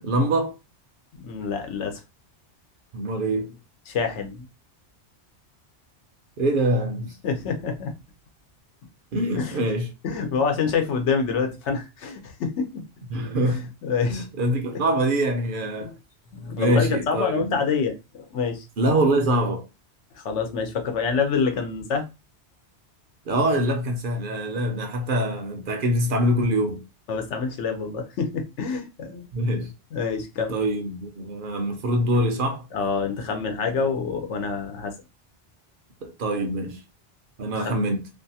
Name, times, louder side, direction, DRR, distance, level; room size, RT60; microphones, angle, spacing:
voice 1, 0.0-0.5 2.9-3.5 6.4-7.1 9.1-9.9 13.1-13.7 14.1-15.9 16.6-17.6 18.8-19.7 23.3-26.8 29.3-29.7 30.5-32.7 36.0-36.8 37.4-38.1, right 1 dB, 60° right, 0.6 m, -24 dB
voice 2, 1.1-2.0 3.9-4.5 7.2-7.9 9.4-9.6 10.0-12.8 13.4-14.3 15.8-15.9 16.3-18.7 20.1-22.1 27.1-29.2 29.9-30.5 32.7-34.9 37.5-37.8, left 5 dB, 85° left, 1.0 m, -27 dB
2.6 x 2.3 x 2.7 m
omnidirectional pair, 1.2 m